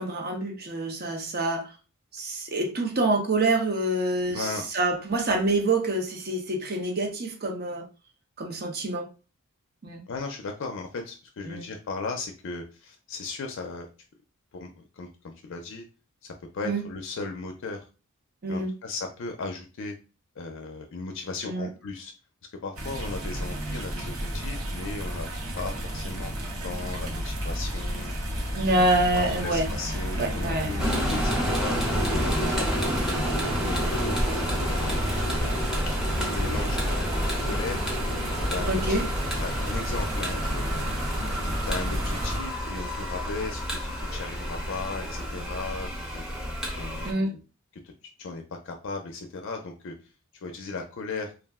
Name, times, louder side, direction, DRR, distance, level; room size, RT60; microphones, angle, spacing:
voice 1, 0.0-1.7 2.1-7.9 8.4-9.1 9.8-10.0 11.4-11.7 16.6-16.8 18.4-18.7 21.4-21.7 28.5-29.7 30.2-30.7 38.7-39.0 47.0-47.3, right 2 dB, 45° right, 2 dB, 0.7 m, -26 dB
voice 2, 4.3-4.7 10.1-13.9 14.5-15.8 16.2-17.8 18.5-19.9 20.4-22.1 22.6-25.3 25.5-26.3 26.6-28.1 28.7-28.8 29.1-32.5 32.8-32.9 33.6-35.7 36.1-37.8 38.5-39.1 39.4-41.0 41.7-46.3 46.8-47.4 47.8-47.9 48.2-49.9 50.4-51.3, left 3 dB, 60° left, 4 dB, 0.4 m, -36 dB
sound 1, 22.8-42.4, equal, 80° right, 0.9 m, -31 dB
sound 2, 30.8-47.1, equal, 5° right, 0.6 m, -30 dB
2.4 x 2.0 x 3.4 m, 0.33 s
head